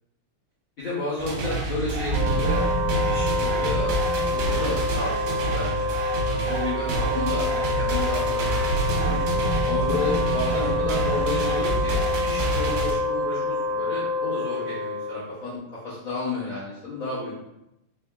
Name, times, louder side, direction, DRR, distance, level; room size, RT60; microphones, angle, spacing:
voice 1, 0.8-2.6 3.1-3.9 4.3-5.9 6.3-9.2 9.6-15.6 15.8-17.5, left 3 dB, 55° left, -10 dB, 1.4 m, -32 dB
sound 1, 1.2-12.9, right 2 dB, 70° right, 1.7 m, -28 dB
sound 2, 2.1-7.0 8.7-14.3, right 3 dB, 75° left, 2.1 m, -32 dB
Wind instrument woodwind instrument, 2.1-15.5, left 2 dB, 90° right, 2.3 m, -27 dB
4.6 x 3.5 x 2.3 m, 0.85 s
omnidirectional pair, 3.9 m